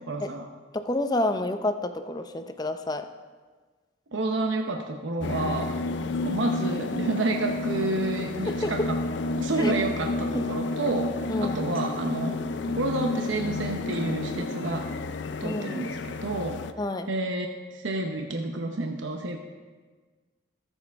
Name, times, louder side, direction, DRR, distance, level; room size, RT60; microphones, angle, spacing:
voice 1, 0.1-0.5 4.1-5.7 6.2-9.0 9.4-12.4 12.7-14.8 15.4-16.6 17.1-19.4, right 2 dB, 75° right, 3 dB, 0.8 m, -29 dB
voice 2, 0.7-3.1 8.5-8.9 9.6-9.7 10.3-10.5 11.3-11.6 15.4-15.9 16.8-17.1, left 1 dB, 20° left, 8 dB, 0.5 m, -29 dB
sound 1, 5.2-16.7, left 2 dB, 70° left, 0.5 m, -31 dB
sound 2, 8.5-9.5 11.5-12.3 13.7-14.3, right 1 dB, 45° right, 1.9 m, -46 dB
20.5 x 7.2 x 3.5 m, 1.4 s
head